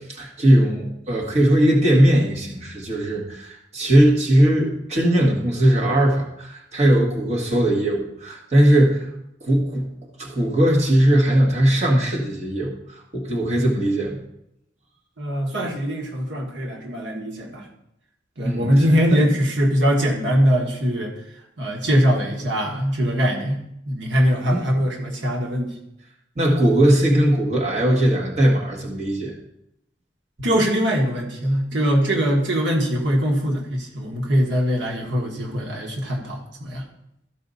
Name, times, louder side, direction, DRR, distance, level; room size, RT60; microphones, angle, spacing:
voice 1, 0.1-9.1 9.4-9.9 10.2-14.2 18.4-18.7 19.1-19.2 24.5-24.7 26.4-29.3, right 1 dB, 40° right, -1 dB, 1.7 m, -19 dB
voice 2, 15.2-17.7 18.4-21.1 21.6-23.6 23.9-25.7 30.4-36.9, equal, 85° right, 0 dB, 1.6 m, -22 dB
14.0 x 5.0 x 4.1 m, 0.79 s
head